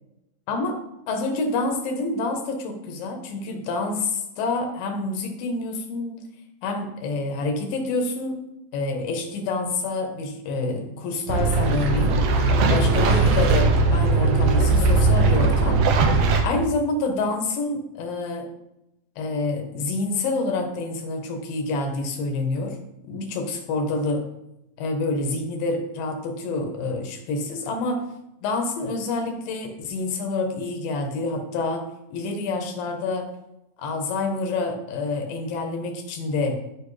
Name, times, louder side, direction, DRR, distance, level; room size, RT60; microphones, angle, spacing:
voice 1, 0.5-0.8 1.1-6.2 6.6-8.4 8.7-12.2 12.7-15.8 16.4-18.5 19.2-22.8 23.1-24.3 24.8-28.0 28.4-33.3 33.8-36.6, left 3 dB, 80° left, 4 dB, 2.8 m, -27 dB
sound 1, 11.3-16.4, right 3 dB, 85° right, 1.4 m, -19 dB
13.0 x 5.0 x 3.3 m, 0.90 s
omnidirectional pair, 4.0 m